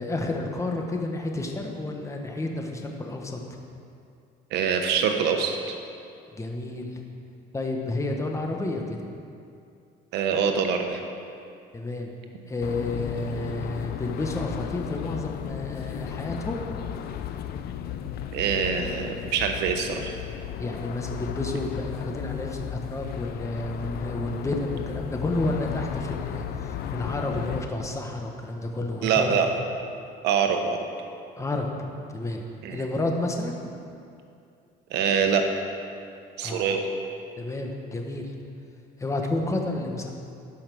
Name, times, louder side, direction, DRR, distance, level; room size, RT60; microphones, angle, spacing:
voice 1, 0.0-3.4 6.3-7.0 7.5-9.0 11.7-12.1 12.5-16.6 20.6-29.4 31.4-31.7 32.1-32.4 32.7-33.6 36.4-36.6 37.4-38.3 39.0-40.1, left 2 dB, 15° left, 2 dB, 1.2 m, -30 dB
voice 2, 4.5-5.8 10.1-11.0 18.3-20.1 29.0-29.5 30.2-30.9 32.6-32.8 34.9-35.4 36.4-36.9, right 6 dB, 85° right, 5 dB, 1.1 m, -24 dB
sound 1, 12.6-27.6, left 9 dB, 65° left, 0.5 m, -34 dB
12.0 x 5.7 x 6.2 m, 2.5 s
cardioid pair, 110°, 17 cm